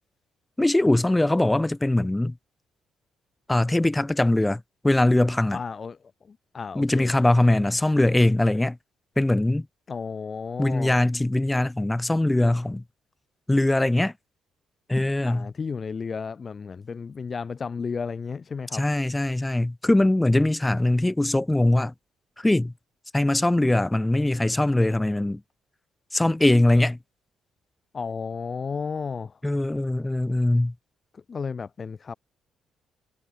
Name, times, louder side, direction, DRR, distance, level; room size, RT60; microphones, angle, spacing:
voice 1, 0.6-2.4 3.5-5.6 6.7-8.8 9.2-9.7 10.6-12.8 13.5-14.1 14.9-15.5 18.7-21.9 22.4-22.7 23.1-25.4 26.1-27.0 29.4-30.7, left 1 dB, 10° left, 2.5 m, -21 dB
voice 2, 5.5-7.1 9.9-11.0 15.2-18.9 27.9-29.3 31.1-32.1, left 5 dB, 30° left, 3.8 m, -33 dB
cardioid pair, 160°, 0 cm